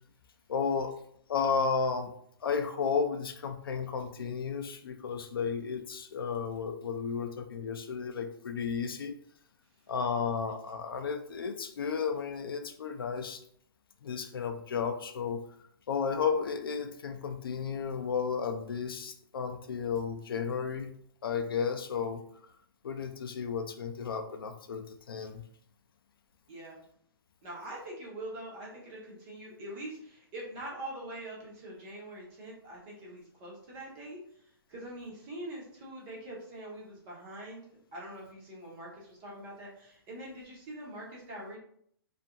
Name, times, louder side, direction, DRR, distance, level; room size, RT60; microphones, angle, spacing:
voice 1, 0.5-0.9 1.3-2.1 2.4-9.2 9.9-13.4 14.0-15.4 15.9-20.9 21.2-22.2 22.8-25.4, left 6 dB, 65° left, 7 dB, 0.4 m, -33 dB
voice 2, 26.5-26.8 27.4-34.2 34.7-37.6 37.9-41.6, right 1 dB, 10° right, -4 dB, 0.4 m, -43 dB
2.5 x 2.4 x 2.7 m, 0.66 s
hypercardioid pair, 175°, 13 cm